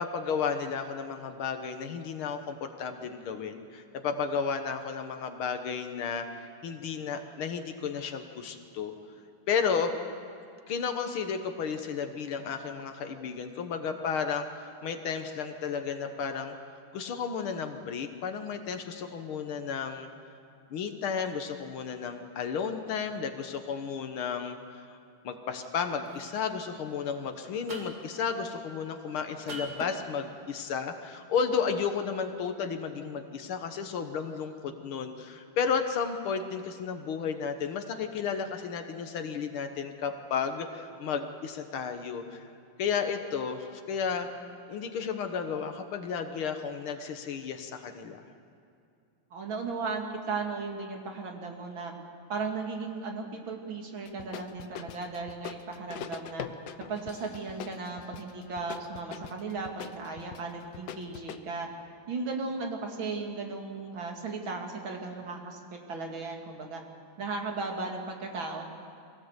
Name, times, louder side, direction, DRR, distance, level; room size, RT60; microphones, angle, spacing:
voice 1, 0.0-8.9 9.5-9.9 10.7-16.6 16.9-20.1 20.7-25.0 25.2-42.4 42.8-44.3 44.7-48.2, left 6 dB, 85° left, 6 dB, 2.0 m, -33 dB
sound 1, 25.6-25.8 26.1-26.4 27.7-28.1 29.5-29.9, right 2 dB, 50° right, 2.9 m, -41 dB
voice 2, 49.3-51.9 52.3-56.5 56.8-61.7 62.1-65.6 65.9-66.8 67.2-68.6, right 4 dB, 70° right, 2 dB, 3.0 m, -36 dB
sound 2, 54.1-61.4, left 9 dB, 65° left, 1.4 m, -43 dB
24.0 x 17.5 x 8.0 m, 2.5 s
omnidirectional pair, 2.3 m